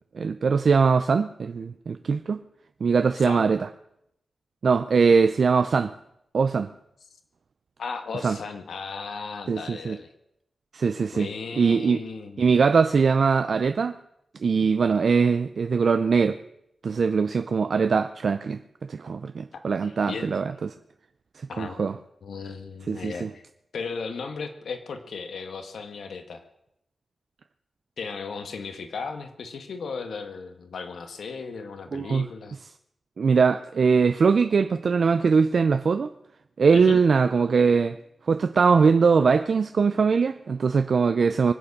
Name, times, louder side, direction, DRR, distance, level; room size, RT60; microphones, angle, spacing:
voice 1, 0.1-2.4 2.8-3.6 4.6-5.9 6.3-6.7 8.2-8.4 9.5-10.0 10.7-11.3 11.6-12.0 12.4-13.9 14.4-16.4 16.8-18.6 18.9-20.7 21.4-21.9 22.9-23.3 31.9-32.3 33.2-36.1 36.6-38.0 38.3-41.5, right 5 dB, 55° right, 0.5 m, -21 dB
voice 2, 7.8-10.1 11.1-12.5 19.5-20.4 21.5-21.9 22.2-23.4 23.7-26.4 28.0-32.5 36.7-37.0, left 5 dB, 85° left, 1.7 m, -36 dB
24.0 x 8.6 x 6.6 m
wide cardioid pair, 145°, 0 cm